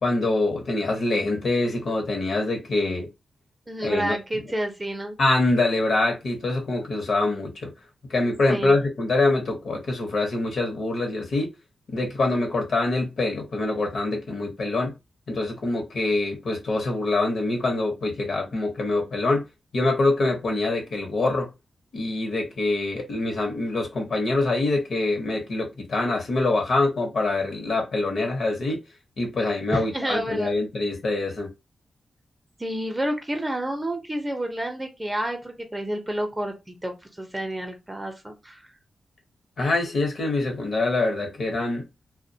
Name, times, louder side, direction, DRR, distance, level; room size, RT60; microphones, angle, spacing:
voice 1, 0.0-3.1 3.8-4.2 5.2-7.7 8.1-11.5 11.9-14.9 15.3-19.4 19.7-21.5 21.9-28.8 29.2-31.5 39.6-41.9, left 2 dB, 65° left, 0.8 m, -25 dB
voice 2, 3.7-5.2 8.5-8.8 29.7-30.6 32.6-38.6, right 1 dB, 15° right, 0.6 m, -30 dB
2.3 x 2.1 x 2.7 m
wide cardioid pair, 105°, 0 cm